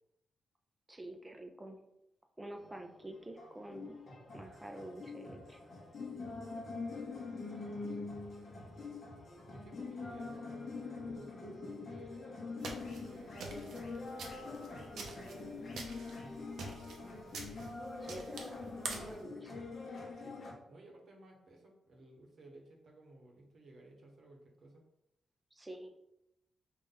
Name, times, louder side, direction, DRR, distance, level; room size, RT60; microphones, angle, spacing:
voice 1, 0.9-1.8 2.4-4.0 4.3-5.6 18.0-18.6 18.9-19.6 25.5-25.9, right 1 dB, 15° right, 5 dB, 0.5 m, -48 dB
sound 1, 2.6-20.5, left 3 dB, 40° left, 1.0 m, -44 dB
voice 2, 6.1-7.1 7.4-9.2 9.5-12.5 12.8-13.4 14.4-15.4 16.1-17.0 20.1-24.8, right 2 dB, 50° right, 0 dB, 1.0 m, -58 dB
sound 2, 12.6-19.2, right 3 dB, 70° right, 0.8 m, -46 dB
5.5 x 2.5 x 3.8 m, 0.85 s
wide cardioid pair, 150°, 0 cm